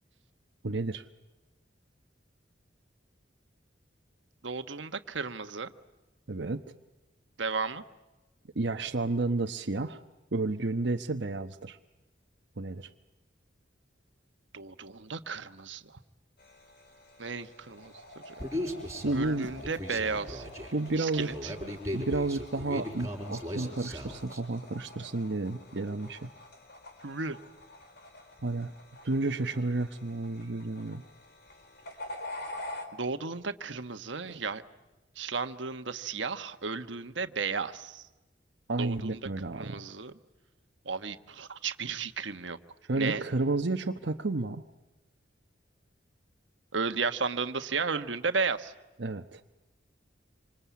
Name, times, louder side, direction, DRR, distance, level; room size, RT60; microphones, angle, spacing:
voice 1, 0.6-1.0 6.3-6.6 8.5-10.0 10.3-11.8 12.6-12.9 19.0-19.5 20.7-21.3 21.9-26.3 28.4-28.7 29.0-31.0 34.2-34.4 38.7-39.8 42.9-44.6 49.0-49.4, right 2 dB, 65° right, 4 dB, 1.1 m, -31 dB
voice 2, 4.4-5.7 7.4-7.8 14.5-16.0 17.2-17.9 18.3-18.4 19.1-20.4 20.9-21.7 27.0-27.4 32.9-34.6 35.2-38.0 38.8-39.2 39.5-40.1 40.8-42.6 43.0-43.2 46.7-48.7, right 4 dB, 85° right, 9 dB, 1.3 m, -34 dB
sound 1, 16.4-32.9, left 1 dB, 60° left, 4.3 m, -47 dB
Human voice, 18.4-24.4, equal, 15° right, 5.7 m, -38 dB
27.0 x 26.0 x 8.4 m, 1.1 s
head